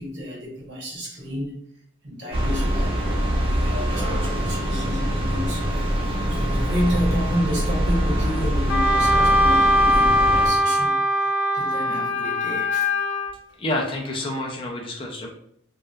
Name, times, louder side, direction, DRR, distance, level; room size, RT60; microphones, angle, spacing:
voice 1, 0.0-1.5 2.0-12.9, equal, 60° right, -3 dB, 0.9 m, -31 dB
sound 1, 2.3-10.5, equal, 25° right, 0.6 m, -24 dB
Wind instrument woodwind instrument, 8.7-13.3, equal, 80° left, 0.6 m, -20 dB
voice 2, 13.6-15.3, left 1 dB, 25° left, 0 dB, 0.4 m, -28 dB
2.8 x 2.1 x 2.3 m, 0.69 s
head